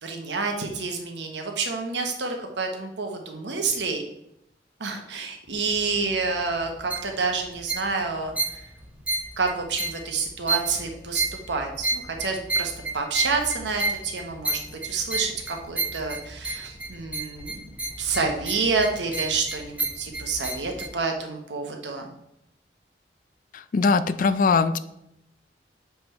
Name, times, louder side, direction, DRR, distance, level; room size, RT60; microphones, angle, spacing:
voice 1, 0.0-4.0 4.8-8.3 9.4-17.7 18.0-22.1, right 4 dB, 80° right, 3 dB, 1.1 m, -28 dB
sound 1, 5.5-20.9, right 2 dB, 10° right, 0.8 m, -32 dB
voice 2, 23.5-24.8, left 4 dB, 50° left, 14 dB, 0.4 m, -21 dB
7.2 x 3.5 x 4.4 m, 0.80 s
head